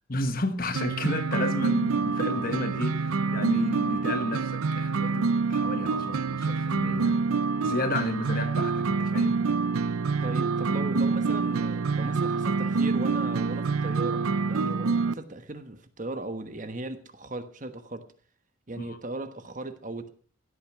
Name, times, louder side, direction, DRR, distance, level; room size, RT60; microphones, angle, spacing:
voice 1, 0.1-7.2 7.6-9.4 18.8-19.0, left 2 dB, 40° left, 1.3 m, -32 dB
sound 1, 0.7-15.1, right 4 dB, 85° right, 0.6 m, -26 dB
voice 2, 10.2-18.1 18.7-20.1, right 2 dB, 35° right, 1.2 m, -37 dB
16.0 x 9.0 x 6.0 m
head